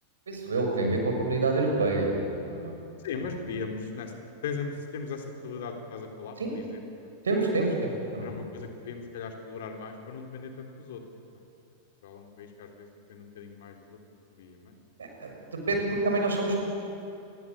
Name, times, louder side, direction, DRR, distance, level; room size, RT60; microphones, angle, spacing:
voice 1, 0.3-2.8 6.4-6.6 7.2-8.3 15.2-15.3 15.7-16.6, right 2 dB, 70° right, 2 dB, 6.4 m, -27 dB
voice 2, 3.0-4.1 4.4-7.1 8.2-11.0 12.0-14.0 14.3-14.7, left 5 dB, 55° left, 4 dB, 3.7 m, -38 dB
27.0 x 22.5 x 8.8 m, 2.8 s
figure-of-eight pair, 90°, 0 cm